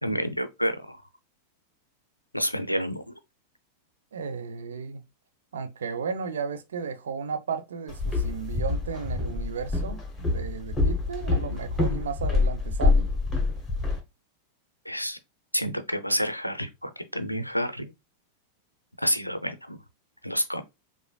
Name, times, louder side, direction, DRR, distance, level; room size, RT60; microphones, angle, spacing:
voice 1, 0.0-1.0 2.3-3.2 14.9-15.2 15.5-17.9 19.0-19.8 20.2-20.6, equal, 90° left, 0.4 m, -29 dB
voice 2, 4.1-5.0 5.5-13.1, right 5 dB, 65° right, 0.5 m, -34 dB
Walk footsteps, 7.9-14.0, left 3 dB, 10° left, 1.0 m, -26 dB
4.9 x 2.5 x 2.3 m
figure-of-eight pair, 90°, 0 cm